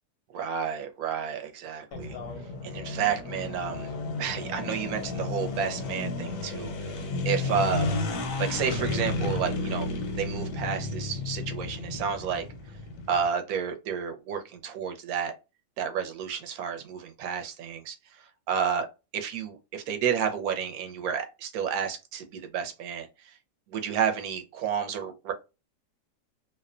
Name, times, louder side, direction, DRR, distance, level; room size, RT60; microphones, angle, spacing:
voice 1, 0.3-2.2 2.6-3.9 4.2-7.9 8.4-9.9 10.2-12.4 13.1-15.3 15.8-18.9 19.1-23.3 23.7-25.3, right 7 dB, 70° right, 1.0 m, -31 dB
sound 1, 1.9-13.2, left 3 dB, 85° left, 1.2 m, -32 dB
2.8 x 2.1 x 2.4 m
omnidirectional pair, 1.8 m